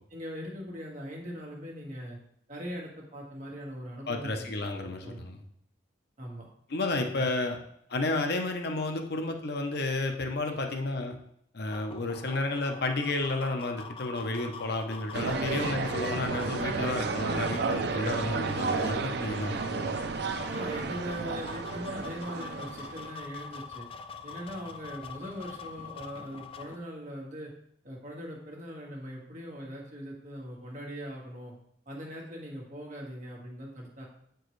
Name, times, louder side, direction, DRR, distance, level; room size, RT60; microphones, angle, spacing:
voice 1, 0.1-2.2 2.5-4.5 4.8-5.2 6.2-6.5 7.0-7.5 10.5-10.6 15.2-15.4 18.1-18.3 19.3-19.6 20.4-23.9 24.2-27.5 27.8-31.5 31.8-34.1, equal, 45° right, -2 dB, 1.6 m, -41 dB
voice 2, 4.1-5.4 6.7-7.6 7.9-11.2 11.5-19.9, left 2 dB, 60° left, 5 dB, 0.7 m, -31 dB
sound 1, 11.7-26.8, left 5 dB, 30° left, 0.3 m, -44 dB
sound 2, 15.1-23.1, right 4 dB, 60° right, 0.4 m, -32 dB
7.7 x 4.6 x 3.2 m, 0.70 s
head